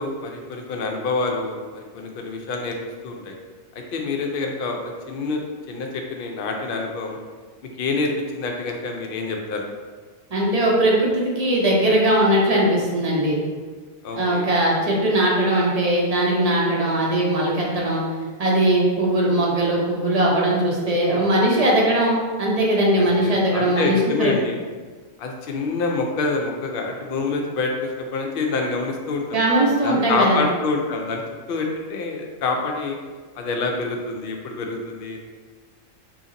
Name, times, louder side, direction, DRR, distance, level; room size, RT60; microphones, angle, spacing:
voice 1, 0.0-2.8 3.0-3.3 3.7-4.8 5.1-5.4 5.7-7.2 7.6-9.7 14.0-14.4 22.9-24.6 25.2-29.4 29.8-31.2 31.5-33.0 33.4-35.2, left 3 dB, 65° left, 2 dB, 0.5 m, -26 dB
voice 2, 10.3-13.4 14.1-18.0 18.4-24.3 29.3-30.4, right 1 dB, 40° right, -4 dB, 0.6 m, -20 dB
2.8 x 2.7 x 3.8 m, 1.4 s
omnidirectional pair, 1.3 m